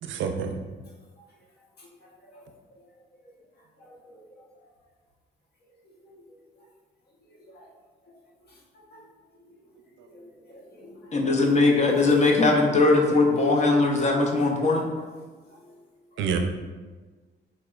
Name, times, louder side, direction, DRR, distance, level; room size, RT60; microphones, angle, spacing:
voice 1, 0.0-0.6 10.0-10.3 16.2-16.4, right 6 dB, 75° right, 5 dB, 0.4 m, -29 dB
voice 2, 3.8-4.4 6.1-6.2 7.3-7.7 8.1-8.2 8.7-9.1 10.1-11.2 11.8-12.2 15.5-15.8, left 1 dB, 55° left, -3 dB, 1.0 m, -50 dB
voice 3, 11.1-14.9, left 3 dB, 35° left, 1 dB, 0.6 m, -20 dB
4.1 x 2.9 x 2.3 m, 1.3 s
cardioid pair, 90°, 20 cm